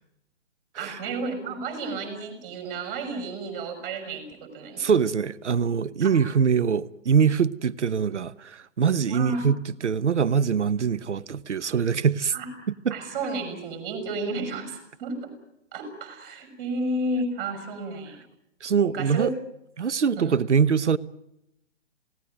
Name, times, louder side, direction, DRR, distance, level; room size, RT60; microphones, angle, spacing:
voice 1, 0.8-5.0 6.0-6.2 9.1-9.5 12.3-12.5 12.9-15.3 15.7-18.2 18.8-19.3 20.1-20.4, right 2 dB, 35° right, 5.8 m, -32 dB
voice 2, 4.8-9.6 9.8-12.3 12.8-12.9 18.6-19.3 19.8-21.0, right 6 dB, 65° right, 1.1 m, -23 dB
27.5 x 18.0 x 8.9 m
figure-of-eight pair, 125°, 37 cm